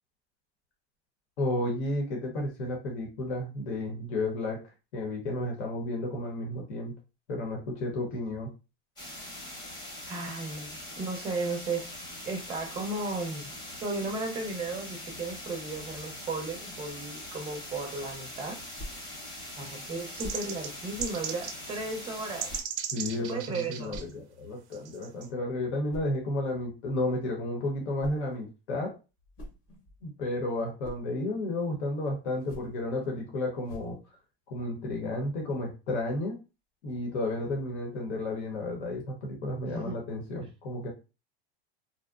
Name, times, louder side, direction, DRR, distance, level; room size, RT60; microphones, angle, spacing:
voice 1, 1.4-4.6 4.9-6.9 7.3-8.5 22.9-29.0 30.0-34.0 34.5-36.3 36.8-40.9, left 2 dB, 80° left, 0.9 m, -32 dB
sound 1, 9.0-22.6, left 1 dB, 15° left, 0.8 m, -42 dB
voice 2, 10.1-13.5 13.8-18.6 19.6-22.5 23.2-24.0 39.7-40.0, right 3 dB, 15° right, 0.5 m, -35 dB
sound 2, 18.8-19.1 20.2-20.5 21.0-21.3 22.5-22.7 23.9-24.2 25.9-26.2 27.7-28.3 29.1-30.1 30.5-31.1 32.3-32.8 33.6-34.0, left 1 dB, 40° left, 0.9 m, -45 dB
sound 3, 20.2-21.6 21.9-22.0 22.2-24.0 24.7-25.3, right 8 dB, 85° right, 0.6 m, -37 dB
2.6 x 2.1 x 2.3 m
supercardioid pair, 130°, 34 cm